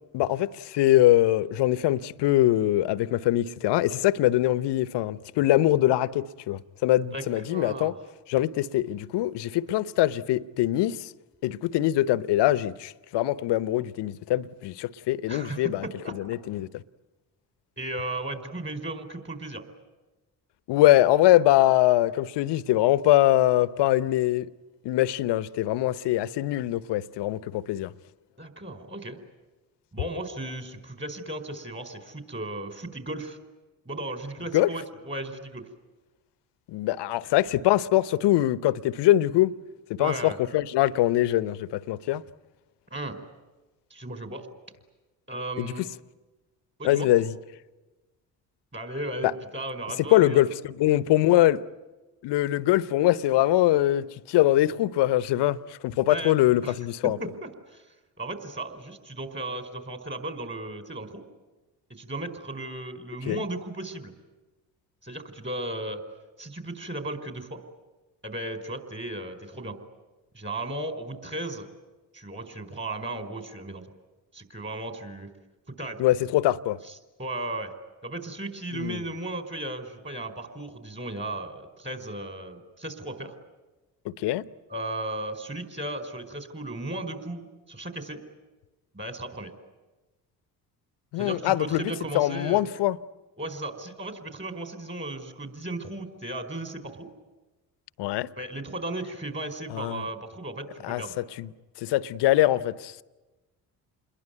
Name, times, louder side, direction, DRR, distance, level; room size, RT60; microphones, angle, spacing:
voice 1, 0.1-7.9 8.3-11.1 11.4-15.9 16.1-16.7 20.7-24.5 24.8-27.9 34.5-34.7 36.7-39.5 39.9-42.2 45.6-45.7 46.8-47.3 49.2-49.3 50.1-51.6 52.2-55.6 55.8-57.2 63.3-63.4 76.0-76.8 78.7-79.0 84.0-84.4 91.1-93.0 98.0-98.3 99.7-100.0 100.8-101.0 101.4-101.5 101.8-103.0, left 14 dB, 60° left, 0.9 m, -23 dB
voice 2, 7.1-8.0 15.3-16.1 17.8-19.6 28.4-29.2 29.9-33.4 33.8-35.7 37.1-37.3 40.0-40.4 42.9-43.2 43.9-44.5 45.3-45.9 46.8-47.1 48.7-50.4 56.1-56.3 56.6-56.7 57.2-57.9 58.2-61.2 61.9-64.1 65.0-66.0 66.4-67.6 68.2-69.8 70.3-71.7 72.1-73.8 74.3-75.3 75.7-76.0 76.8-77.7 78.0-83.3 84.7-88.2 88.9-89.5 91.2-92.7 93.4-97.1 98.4-101.2, right 1 dB, 25° right, 4.9 m, -35 dB
28.5 x 21.5 x 9.4 m
hypercardioid pair, 50°, 47 cm